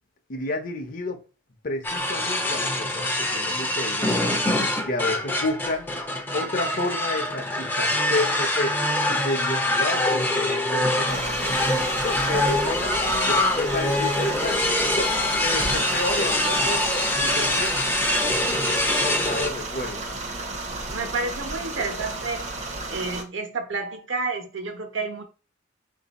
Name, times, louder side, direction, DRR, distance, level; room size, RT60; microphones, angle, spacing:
voice 1, 0.3-1.2 1.6-4.2 4.8-5.9 6.3-8.8 9.1-11.6 12.0-12.9 13.2-16.9 17.2-17.7 18.3-20.0, left 2 dB, 45° left, 0.7 m, -31 dB
sound 1, 1.8-19.5, left 1 dB, 10° left, 0.5 m, -24 dB
sound 2, 11.1-23.2, right 2 dB, 35° right, 0.7 m, -33 dB
voice 2, 20.9-22.5 22.9-25.2, right 3 dB, 75° right, 1.0 m, -30 dB
4.3 x 2.6 x 4.1 m
head